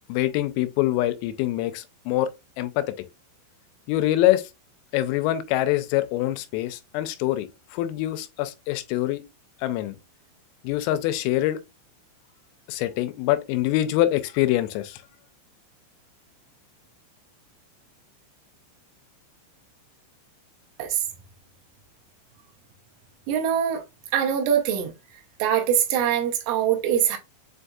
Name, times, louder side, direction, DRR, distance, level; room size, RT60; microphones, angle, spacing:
voice 1, 0.1-2.3 2.6-2.9 3.9-4.4 4.9-9.2 9.6-10.0 10.6-11.6 12.7-15.0, left 14 dB, 90° left, 3.2 m, -24 dB
voice 2, 23.3-23.8 24.1-24.9 25.4-27.2, right 9 dB, 80° right, 3.3 m, -23 dB
7.7 x 2.7 x 2.3 m
omnidirectional pair, 5.8 m